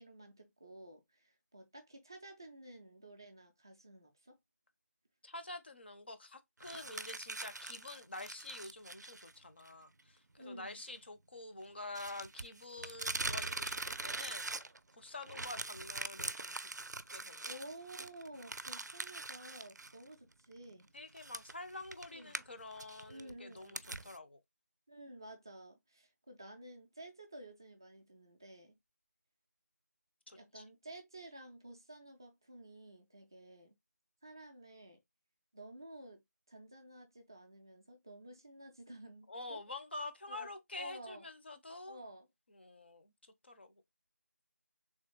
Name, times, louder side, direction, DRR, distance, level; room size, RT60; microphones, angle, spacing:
voice 1, 0.0-4.4 6.7-7.1 10.4-10.8 17.4-20.9 22.1-22.3 23.1-23.8 24.9-28.8 30.3-33.8 34.2-35.0 35.5-39.6 40.3-40.5 40.7-41.3 41.9-42.3, right 1 dB, 15° right, 0.4 m, -52 dB
voice 2, 5.2-14.7 15.0-16.7 17.1-17.6 20.9-24.4 30.3-30.6 39.3-42.0 42.5-43.8, left 2 dB, 40° left, 0.6 m, -48 dB
sound 1, 6.6-9.3 9.7-9.8 11.9-14.9 15.2-19.9 20.3-20.4 21.2-24.2, right 3 dB, 80° right, 0.4 m, -42 dB
3.4 x 2.9 x 3.0 m
figure-of-eight pair, 165°, 9 cm